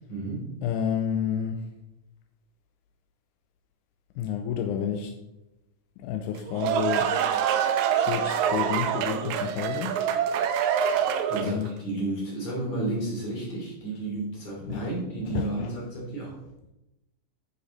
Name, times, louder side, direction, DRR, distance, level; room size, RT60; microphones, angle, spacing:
voice 1, 0.1-0.5 10.9-16.3, right 2 dB, 45° left, -5 dB, 4.1 m, -32 dB
voice 2, 0.6-1.6 4.2-5.1 6.0-7.1 7.9-10.0 11.4-11.7 14.6-14.9 15.3-15.7, left 8 dB, 80° left, 5 dB, 1.9 m, -30 dB
sound 1, 6.3-11.7, right 8 dB, 85° right, 1.7 m, -25 dB
9.9 x 5.3 x 3.8 m, 0.94 s
omnidirectional pair, 4.0 m